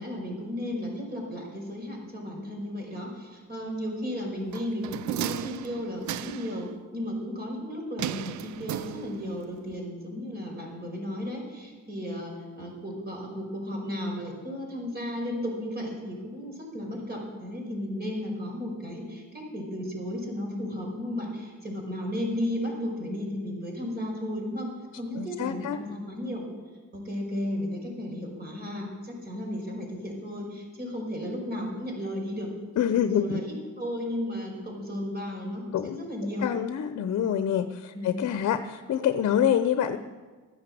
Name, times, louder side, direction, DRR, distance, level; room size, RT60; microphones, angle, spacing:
voice 1, 0.0-24.7 24.9-26.4 26.9-32.5 32.9-36.5 37.9-38.3, left 1 dB, 30° right, 2 dB, 5.4 m, -34 dB
sound 1, 4.5-6.6 8.0-9.4 9.7-9.8, right 12 dB, 70° right, 0.5 m, -35 dB
voice 2, 25.2-25.8 32.8-33.4 35.7-36.0 36.4-40.0, left 9 dB, 60° left, 10 dB, 0.8 m, -26 dB
14.0 x 10.0 x 7.7 m, 1.4 s
cardioid pair, 90°, 30 cm